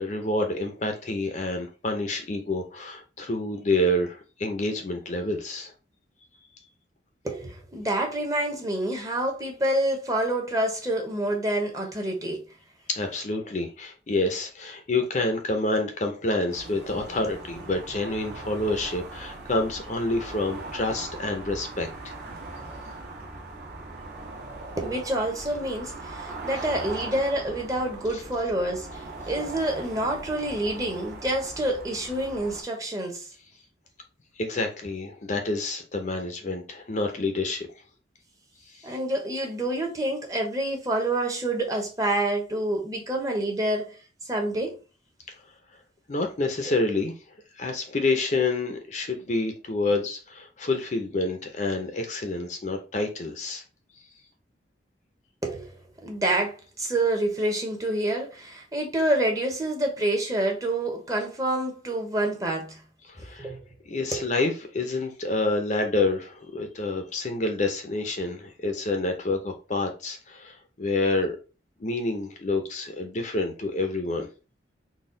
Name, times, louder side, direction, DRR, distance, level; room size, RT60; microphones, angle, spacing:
voice 1, 0.0-5.7 12.9-22.1 34.4-37.7 38.7-38.9 46.1-47.1 47.6-53.6 63.1-63.5 63.9-71.3 71.8-74.3, left 2 dB, 40° left, 0.6 m, -28 dB
voice 2, 7.2-12.4 24.8-33.3 38.8-44.8 46.7-46.8 55.4-62.8 63.2-63.7 64.1-64.3, right 1 dB, 20° right, 0.9 m, -28 dB
sound 1, 16.5-32.6, right 2 dB, 65° right, 1.3 m, -40 dB
4.1 x 2.3 x 3.8 m
head